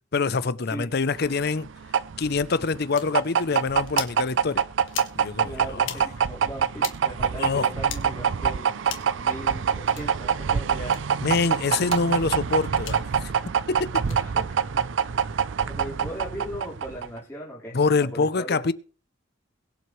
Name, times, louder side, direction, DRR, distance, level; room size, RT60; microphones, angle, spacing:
voice 1, 0.1-1.7 2.2-4.6 5.1-6.1 7.4-7.7 11.2-13.3 13.7-13.9 17.7-18.7, left 4 dB, 55° left, 0.6 m, -25 dB
sound 1, 1.2-17.2, right 7 dB, 70° right, 0.5 m, -25 dB
sound 2, 2.9-3.1 3.9-4.2 4.9-5.1 5.8-6.0 6.8-7.0 7.8-8.0 8.8-9.1 9.9-10.1 10.9-11.0 11.8-12.0 12.8-13.0 14.0-14.2, left 10 dB, 80° left, 1.7 m, -36 dB
voice 2, 5.4-8.7 9.2-11.0 14.1-14.4 15.7-17.8 18.1-18.6, equal, 15° left, 4.4 m, -38 dB
22.0 x 7.7 x 3.2 m
head